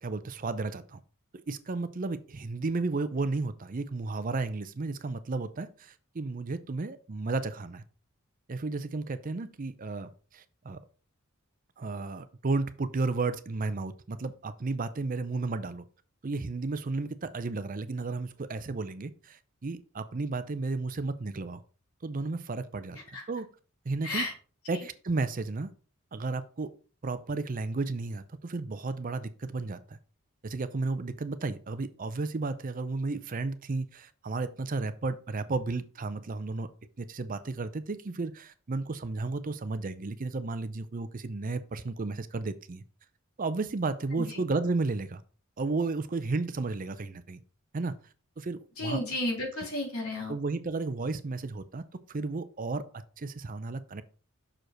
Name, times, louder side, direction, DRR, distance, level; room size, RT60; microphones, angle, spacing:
voice 1, 0.0-1.0 1.3-7.8 8.5-10.8 11.8-15.9 16.2-21.6 22.0-23.0 23.3-23.5 23.9-24.3 24.7-25.7 26.1-26.7 27.0-30.0 30.4-36.7 37.0-42.8 43.4-45.2 45.6-47.4 47.7-48.0 48.4-49.0 49.6-49.7 50.3-54.0, right 3 dB, 40° right, 0.5 m, -33 dB
voice 2, 48.8-50.4, left 2 dB, 80° left, 3.4 m, -33 dB
6.4 x 5.0 x 4.5 m
head